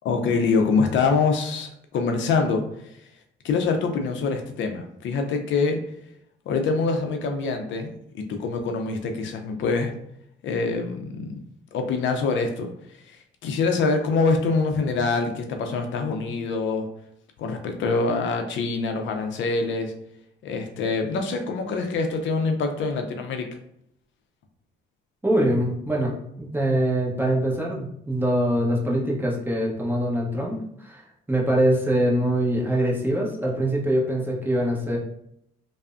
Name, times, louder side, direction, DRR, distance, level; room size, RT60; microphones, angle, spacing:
voice 1, 0.0-2.6 3.4-5.8 6.5-9.9 10.4-11.3 11.7-12.7 13.1-16.9 17.4-19.9 20.4-23.5, left 4 dB, 70° left, 5 dB, 0.4 m, -25 dB
voice 2, 25.2-26.1 26.4-31.0 31.3-35.0, right 1 dB, 10° right, -3 dB, 0.7 m, -23 dB
3.3 x 2.0 x 2.4 m, 0.73 s
cardioid pair, 90°, 20 cm